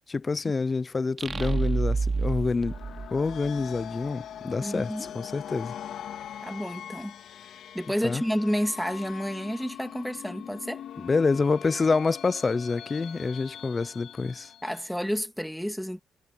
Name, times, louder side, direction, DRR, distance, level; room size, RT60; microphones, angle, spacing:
voice 1, 0.1-2.8 3.1-5.7 8.0-8.2 11.0-14.5, left 4 dB, 30° left, 0.7 m, -27 dB
sound 1, 1.2-3.8, right 4 dB, 30° right, 3.5 m, -29 dB
sound 2, 2.5-15.0, left 10 dB, 75° left, 3.3 m, -42 dB
voice 2, 4.6-5.1 6.4-7.1 7.7-10.8 14.6-16.0, equal, ahead, 2.3 m, -30 dB
cardioid pair, 90°, 0 cm